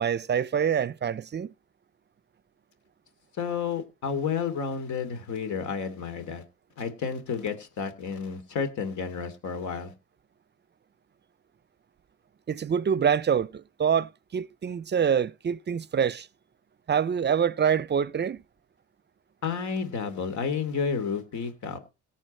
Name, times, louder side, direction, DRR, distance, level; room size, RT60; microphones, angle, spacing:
voice 1, 0.0-1.5 12.5-16.3 16.9-18.4, right 7 dB, 35° right, 0.6 m, -26 dB
voice 2, 3.4-6.4 6.8-9.9 19.4-21.8, left 6 dB, 70° left, 2.9 m, -31 dB
17.5 x 7.3 x 4.3 m
cardioid pair, 90°, 30 cm